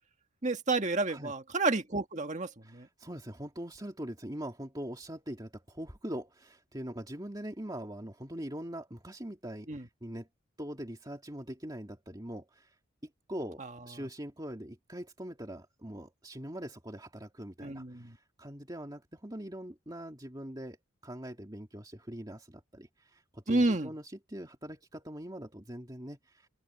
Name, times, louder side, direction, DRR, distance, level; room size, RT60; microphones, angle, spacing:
voice 1, 0.4-2.9 9.7-9.8 17.6-18.1 23.5-23.9, right 2 dB, 35° right, 1.7 m, -30 dB
voice 2, 2.6-10.3 10.6-20.8 21.0-26.5, equal, 20° right, 2.4 m, -42 dB
open air
head